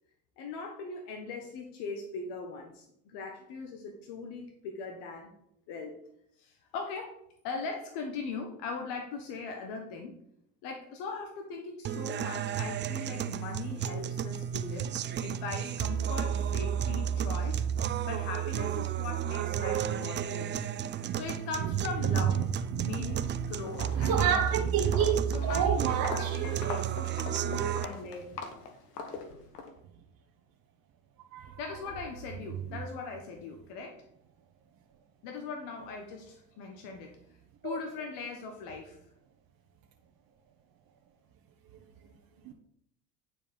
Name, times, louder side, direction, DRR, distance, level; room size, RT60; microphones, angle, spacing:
voice 1, 0.4-5.3 5.7-5.9 6.4-10.2 10.6-14.9 15.2-17.6 18.0-20.7 21.1-22.5 22.8-24.7 25.3-28.3 31.6-34.0 35.2-37.2 37.6-39.0, left 4 dB, 60° left, 1.5 m, -40 dB
sound 1, 11.8-27.8, right 9 dB, 25° right, 0.4 m, -32 dB
voice 2, 19.3-19.9 21.0-21.2 22.0-22.2 22.7-23.2 23.9-26.3 27.3-27.9 31.3-31.6 37.6-37.8 42.4-42.5, right 8 dB, 45° right, 1.3 m, -30 dB
Walk footsteps, 23.0-23.4 23.7-29.7, left 5 dB, 85° left, 1.4 m, -41 dB
9.4 x 4.8 x 5.4 m
hypercardioid pair, 75°, 46 cm